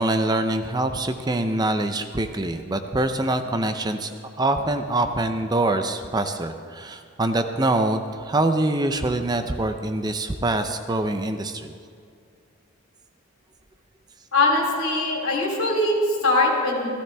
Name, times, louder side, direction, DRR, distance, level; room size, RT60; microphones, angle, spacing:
voice 1, 0.0-4.1 4.4-11.7, right 2 dB, 20° right, 7 dB, 0.5 m, -24 dB
voice 2, 14.3-16.9, left 2 dB, 80° left, -1 dB, 3.1 m, -21 dB
15.5 x 14.5 x 3.4 m, 2.4 s
head